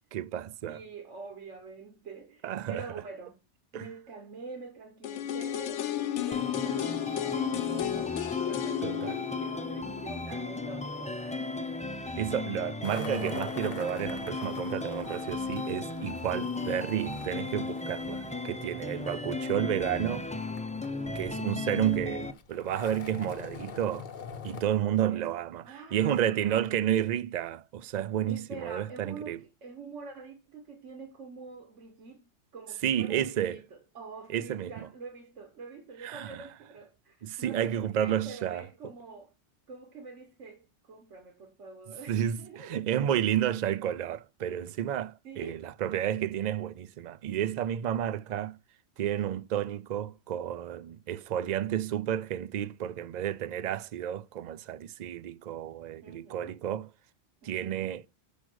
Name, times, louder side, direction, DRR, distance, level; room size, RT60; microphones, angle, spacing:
voice 1, 0.1-0.8 2.4-2.8 3.7-3.9 8.8-9.2 12.2-20.3 21.2-24.1 24.4-29.4 32.8-33.6 34.3-34.9 36.0-36.4 37.2-38.6 42.1-48.6 49.0-56.9 57.4-58.0, right 10 dB, 55° right, 0.5 m, -31 dB
voice 2, 0.7-3.4 3.7-5.8 6.2-11.9 20.9-21.4 24.8-25.3 25.6-26.6 28.3-39.3 39.7-42.8 43.2-43.4 45.2-45.7 56.0-56.6 57.4-57.9, right 4 dB, 85° right, 1.6 m, -46 dB
sound 1, 5.0-10.9 11.3-11.4, left 11 dB, 80° left, 0.9 m, -33 dB
sound 2, 6.3-22.3, left 3 dB, 10° left, 0.3 m, -36 dB
sound 3, 12.8-24.6, left 6 dB, 50° left, 0.7 m, -45 dB
6.2 x 5.0 x 6.2 m
omnidirectional pair, 1.2 m